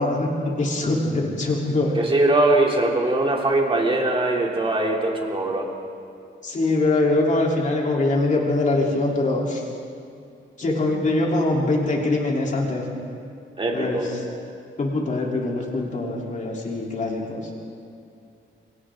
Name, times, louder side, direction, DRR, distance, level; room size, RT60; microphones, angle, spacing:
voice 1, 0.0-2.0 6.4-9.6 10.6-12.8 13.7-14.0 14.8-17.4, left 2 dB, 35° left, -2 dB, 3.5 m, -23 dB
voice 2, 1.9-5.7 13.6-14.1, right 2 dB, 25° right, -1 dB, 3.1 m, -21 dB
28.0 x 24.0 x 3.8 m, 2.5 s
wide cardioid pair, 140°, 21 cm